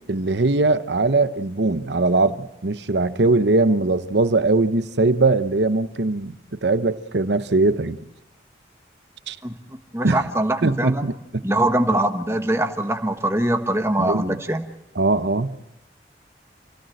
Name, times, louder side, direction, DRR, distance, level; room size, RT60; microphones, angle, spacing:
voice 1, 0.1-6.4 6.6-8.0 9.3-9.4 10.0-10.2 10.6-11.4 14.0-14.4 15.0-15.6, right 3 dB, 80° right, 0.9 m, -20 dB
voice 2, 9.4-11.1 11.4-14.6, right 1 dB, 15° right, 1.3 m, -23 dB
27.5 x 17.0 x 7.8 m
head